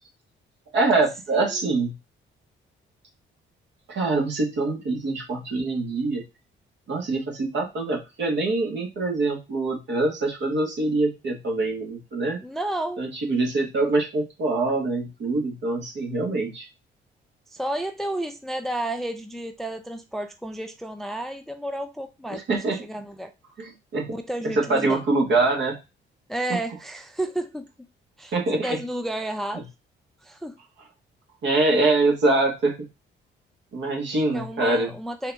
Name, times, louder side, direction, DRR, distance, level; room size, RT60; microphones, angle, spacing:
voice 1, 0.7-1.9 3.9-6.2 6.9-12.4 13.0-16.7 22.3-22.8 23.6-24.1 24.4-25.8 28.3-28.8 29.5-29.6 31.4-32.9 33.7-34.9, right 2 dB, 65° right, 1.6 m, -24 dB
voice 2, 12.4-13.0 17.5-23.3 24.1-25.0 26.3-27.7 28.2-29.6 30.2-30.5 34.3-35.3, right 1 dB, ahead, 0.4 m, -31 dB
4.0 x 2.8 x 3.4 m
cardioid pair, 90°, 20 cm